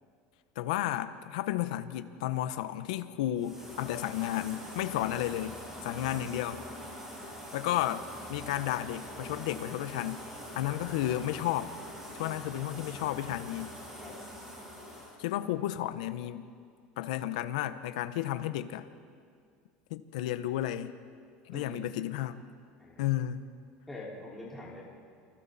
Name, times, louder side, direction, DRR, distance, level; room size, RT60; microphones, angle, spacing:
voice 1, 0.6-6.6 7.5-8.0 8.3-10.2 10.5-11.7 12.1-13.7 15.2-16.5 17.0-18.9 19.9-20.9 21.5-22.4 23.0-23.4, left 13 dB, 85° left, 11 dB, 1.1 m, -32 dB
sound 1, 3.4-15.1, equal, 15° right, 7.8 m, -44 dB
voice 2, 10.6-11.0 14.0-14.2 21.5-21.9 22.8-23.1 23.9-24.8, left 1 dB, 5° left, -6 dB, 5.0 m, -45 dB
29.0 x 24.5 x 4.3 m, 2.1 s
supercardioid pair, 135°, 4 cm